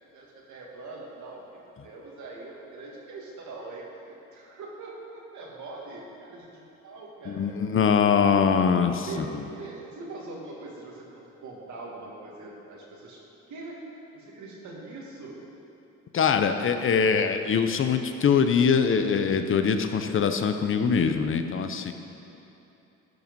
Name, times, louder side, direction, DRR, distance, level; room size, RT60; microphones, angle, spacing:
voice 1, 0.1-7.8 8.1-8.5 9.1-13.2 13.5-13.8 14.1-15.4, right 3 dB, 70° right, -2 dB, 2.1 m, -42 dB
voice 2, 7.3-9.3 16.1-21.9, left 6 dB, 45° left, 8 dB, 0.7 m, -23 dB
11.5 x 5.8 x 5.3 m, 3.0 s
cardioid pair, 90°, 30 cm